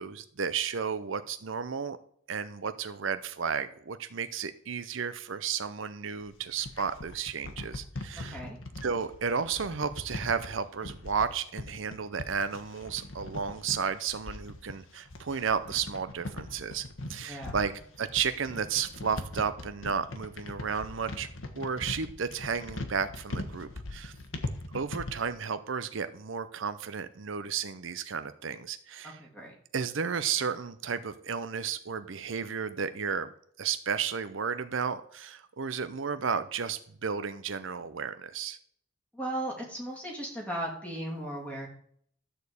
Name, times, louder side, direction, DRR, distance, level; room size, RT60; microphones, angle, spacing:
voice 1, 0.0-2.0 2.3-8.4 8.8-17.7 18.0-21.3 21.5-24.1 24.7-29.2 29.7-33.3 33.6-38.6, right 6 dB, 70° right, 12 dB, 0.6 m, -33 dB
sound 1, 6.2-25.3, left 2 dB, 75° left, 1.4 m, -40 dB
voice 2, 8.2-8.6 17.2-17.6 29.0-29.5 39.1-41.7, right 1 dB, 5° left, -2 dB, 2.8 m, -37 dB
12.5 x 4.5 x 8.2 m, 0.64 s
head